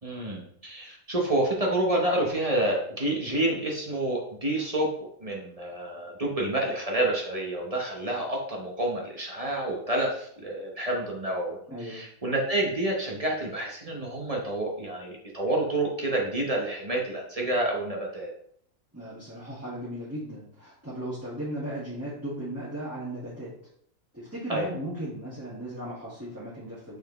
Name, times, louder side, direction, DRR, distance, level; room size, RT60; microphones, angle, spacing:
voice 1, 0.0-4.9 5.2-18.3 24.5-24.7, right 1 dB, 30° right, -1 dB, 1.1 m, -28 dB
voice 2, 11.7-12.0 18.9-23.5 24.1-27.0, right 1 dB, 10° right, -9 dB, 1.7 m, -36 dB
6.4 x 4.7 x 3.1 m, 0.66 s
omnidirectional pair, 1.4 m